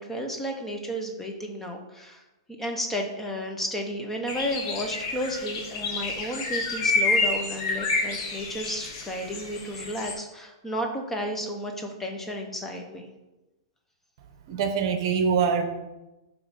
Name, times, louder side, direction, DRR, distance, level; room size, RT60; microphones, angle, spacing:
voice 1, 0.0-2.2 2.6-13.1, equal, 10° left, 2 dB, 0.7 m, -32 dB
sound 1, 4.3-10.1, left 3 dB, 50° left, 1.3 m, -28 dB
voice 2, 14.5-15.7, right 6 dB, 50° right, 6 dB, 0.9 m, -24 dB
7.4 x 3.1 x 5.2 m, 1.0 s
hypercardioid pair, 150°, 3 cm